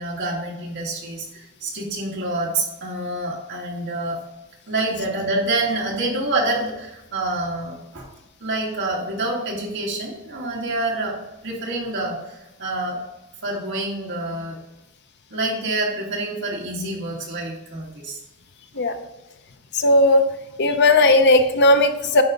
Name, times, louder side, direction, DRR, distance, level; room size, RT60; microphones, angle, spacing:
voice 1, 0.0-4.2 4.7-8.1 8.4-13.0 13.4-14.6 15.3-18.2, right 2 dB, 60° right, -2 dB, 2.3 m, -27 dB
voice 2, 19.7-20.2 20.6-22.2, left 2 dB, 55° left, 7 dB, 0.8 m, -16 dB
10.0 x 4.3 x 3.8 m, 0.98 s
head